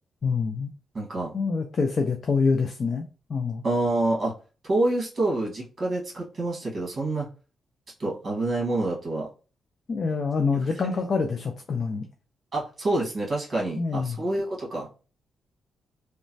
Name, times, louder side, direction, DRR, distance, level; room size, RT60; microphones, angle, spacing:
voice 1, 0.2-0.7 1.3-3.6 9.9-12.0 13.8-14.2, left 4 dB, 40° left, 4 dB, 0.3 m, -26 dB
voice 2, 0.9-1.3 3.6-4.3 4.6-7.3 8.0-9.3 12.5-14.9, right 2 dB, 35° right, -3 dB, 1.3 m, -27 dB
3.0 x 2.1 x 2.6 m, 0.35 s
cardioid pair, 135°, 0 cm